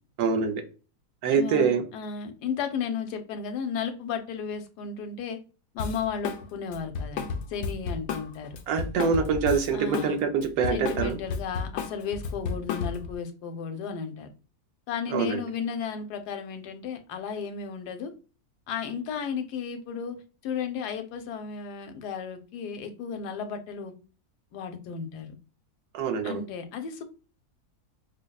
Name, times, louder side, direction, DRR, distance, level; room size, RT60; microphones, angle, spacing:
voice 1, 0.2-0.6 1.2-1.8 8.7-11.2 15.1-15.4 25.9-26.4, right 5 dB, 70° right, 7 dB, 1.0 m, -25 dB
voice 2, 1.3-5.4 5.7-8.6 9.7-10.2 10.7-14.3 14.9-18.1 18.7-23.9 24.5-25.3 26.2-27.0, left 6 dB, 85° left, 7 dB, 1.2 m, -34 dB
Drum kit, 5.8-6.4 6.7-10.1 10.4-13.1, left 5 dB, 70° left, 0.9 m, -32 dB
5.0 x 2.1 x 2.3 m, 0.35 s
omnidirectional pair, 1.7 m